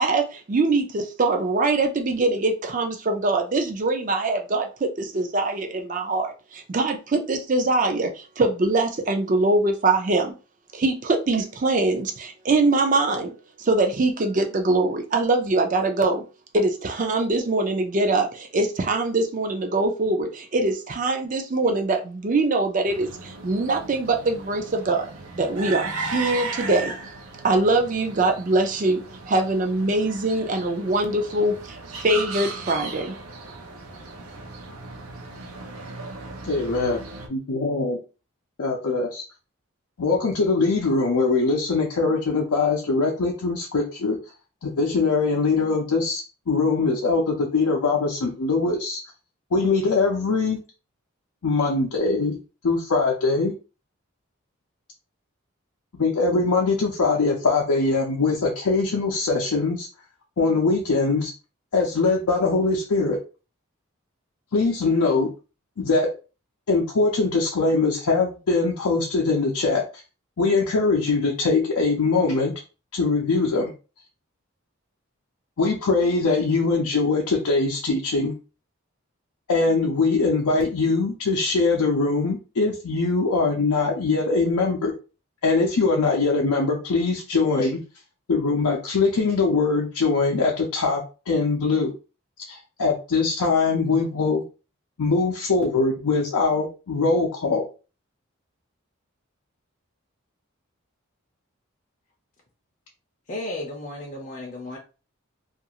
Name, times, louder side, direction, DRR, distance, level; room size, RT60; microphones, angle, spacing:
voice 1, 0.0-10.4 10.7-16.2 16.5-27.0 27.4-33.2, right 2 dB, 35° right, 4 dB, 0.4 m, -23 dB
sound 1, 22.9-37.3, right 3 dB, 85° right, 0.6 m, -36 dB
voice 2, 36.4-37.0 37.3-38.0 38.6-39.2 40.0-44.2 44.6-49.0 49.5-50.6 51.4-52.4 52.6-53.5 56.0-59.9 60.4-61.3 61.7-63.2 64.5-65.3 65.8-66.1 66.7-69.8 70.4-72.5 72.9-73.7 75.6-78.4 79.5-84.9 85.4-87.8 88.3-91.9 92.4-94.4 95.0-97.6, left 3 dB, 85° left, -2 dB, 0.5 m, -22 dB
voice 3, 103.3-104.8, left 1 dB, 35° left, -1 dB, 0.5 m, -34 dB
2.5 x 2.4 x 2.8 m, 0.33 s
head